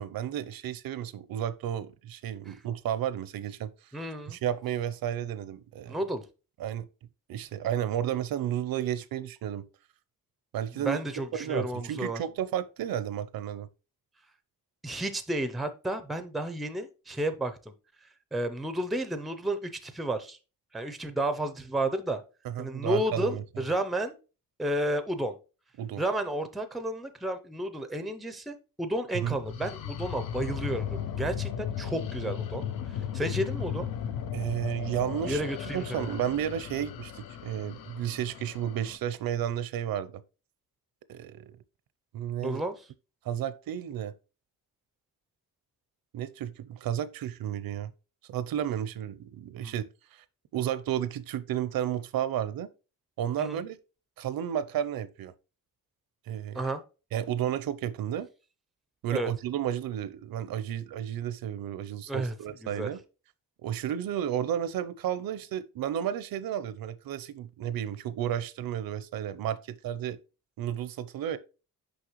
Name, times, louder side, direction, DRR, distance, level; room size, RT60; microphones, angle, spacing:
voice 1, 0.0-3.7 4.3-6.0 6.6-6.9 7.3-9.6 10.5-11.0 11.3-13.7 22.4-23.4 25.8-26.0 29.1-29.4 34.3-35.4 35.7-40.2 41.1-41.4 42.1-42.6 43.2-44.1 46.1-47.9 48.3-50.2 50.5-52.7 53.2-53.8 54.2-55.3 56.3-56.6 57.1-58.3 59.0-63.0 63.6-70.2 70.6-71.4, right 10 dB, 75° right, 0.6 m, -32 dB
voice 2, 3.9-4.4 5.9-6.3 10.7-12.2 14.8-17.7 18.3-20.4 20.7-22.2 22.6-24.2 24.6-25.4 26.0-33.9 35.2-36.1 42.4-42.8 49.6-49.7 53.4-53.6 56.5-56.8 59.1-59.3 62.1-62.4 62.6-62.9, right 1 dB, ahead, 0.4 m, -32 dB
sound 1, 29.2-39.0, left 8 dB, 75° left, 0.6 m, -36 dB
6.3 x 5.4 x 3.0 m
wide cardioid pair, 165°, 35 cm